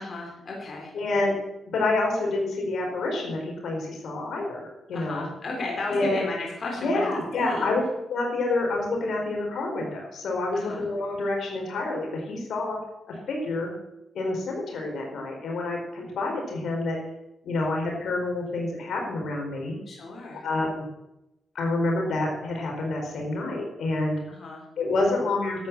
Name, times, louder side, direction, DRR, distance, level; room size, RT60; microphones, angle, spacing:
voice 1, 0.0-0.9 4.9-7.1 7.4-7.7 10.5-10.8 19.9-20.4 24.3-24.6, left 2 dB, 50° left, -1 dB, 3.9 m, -34 dB
voice 2, 0.9-1.3 1.7-5.3 5.9-6.3 6.8-7.8 8.1-12.8 13.1-13.7 14.1-17.0 17.4-19.8 20.4-20.9 21.5-24.2 24.8-25.7, left 2 dB, 75° left, 0 dB, 4.6 m, -28 dB
12.5 x 8.7 x 7.4 m, 0.89 s
cardioid pair, 80°, 0 cm